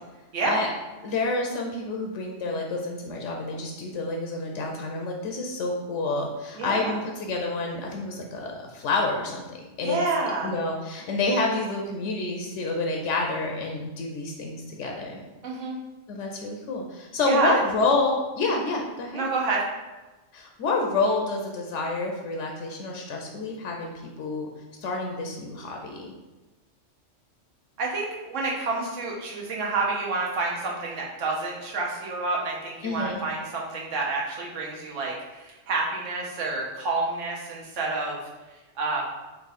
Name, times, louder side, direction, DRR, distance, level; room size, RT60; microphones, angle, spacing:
voice 1, 1.0-10.0 10.4-15.2 16.1-19.2 20.3-23.9 24.2-24.5 24.8-26.1 32.8-33.2, left 3 dB, 80° left, 1 dB, 0.9 m, -28 dB
voice 2, 6.5-7.0 9.8-10.5 15.4-15.8 17.3-17.6 19.1-19.7 27.8-38.2 38.8-39.0, right 3 dB, 90° right, -2 dB, 1.2 m, -28 dB
3.6 x 2.7 x 4.0 m, 1.1 s
omnidirectional pair, 1.2 m